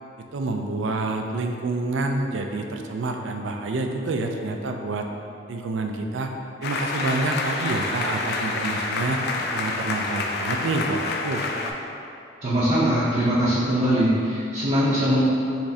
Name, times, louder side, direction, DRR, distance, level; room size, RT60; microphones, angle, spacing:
voice 1, 0.3-5.1 5.5-6.3 6.6-9.2 9.5-11.4, right 2 dB, 75° right, 4 dB, 0.4 m, -28 dB
sound 1, 6.6-11.7, left 3 dB, 55° left, 0.4 m, -28 dB
voice 2, 12.4-15.2, equal, 35° right, -10 dB, 0.6 m, -21 dB
5.8 x 3.1 x 2.7 m, 2.8 s
head